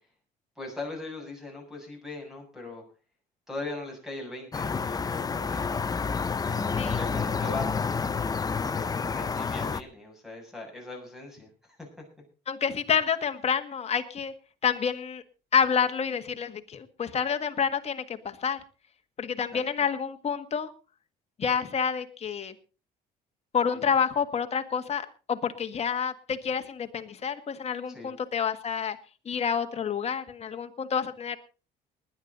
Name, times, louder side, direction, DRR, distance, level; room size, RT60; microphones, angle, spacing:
voice 1, 0.6-2.8 3.5-5.7 6.2-7.9 8.6-12.0 19.5-19.9 23.7-23.9 27.9-28.1, left 2 dB, ahead, 3 dB, 7.3 m, -40 dB
sound 1, 4.5-9.8, left 5 dB, 20° left, 0.7 m, -29 dB
voice 2, 12.5-14.3 14.6-15.2 15.5-18.6 19.2-20.7 21.4-22.5 23.5-29.0 29.3-31.4, left 7 dB, 40° left, 7 dB, 1.7 m, -28 dB
19.5 x 11.0 x 4.0 m, 0.34 s
cardioid pair, 110°, 17 cm